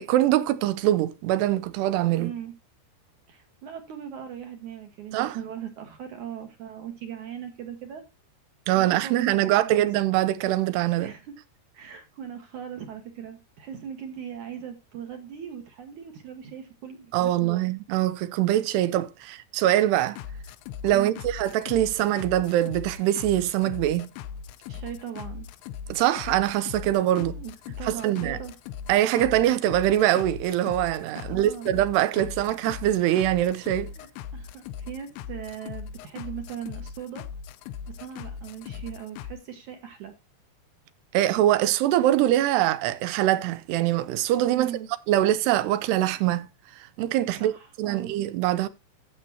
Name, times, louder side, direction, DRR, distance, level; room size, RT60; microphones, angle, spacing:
voice 1, 0.0-2.3 5.1-5.4 8.7-11.1 17.1-20.2 20.8-24.1 25.9-27.4 27.8-28.4 28.9-33.9 41.1-44.7 45.1-46.5 47.0-47.5 47.8-48.7, right 13 dB, 80° right, 2.8 m, -23 dB
voice 2, 2.2-2.5 3.3-8.0 8.8-9.9 11.0-11.4 11.7-17.6 20.9-21.2 24.7-25.5 27.0-28.5 31.3-31.7 34.0-37.3 37.9-40.1 44.5-44.9 47.3-48.1, right 9 dB, 60° right, 2.4 m, -39 dB
sound 1, 20.0-39.3, left 7 dB, 80° left, 2.5 m, -39 dB
13.0 x 8.7 x 2.8 m
omnidirectional pair, 4.9 m